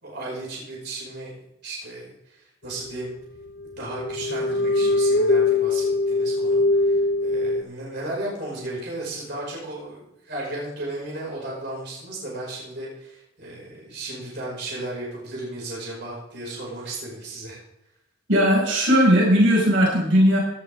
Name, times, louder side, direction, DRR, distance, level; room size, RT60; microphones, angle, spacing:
voice 1, 0.0-1.3 1.6-3.1 3.8-17.6, right 2 dB, 55° right, -4 dB, 5.7 m, -35 dB
sound 1, 3.0-3.1 3.6-7.6, left 2 dB, 55° left, 0.7 m, -22 dB
voice 2, 18.3-20.4, equal, 70° right, -2 dB, 5.9 m, -17 dB
17.5 x 12.0 x 3.6 m, 0.84 s
head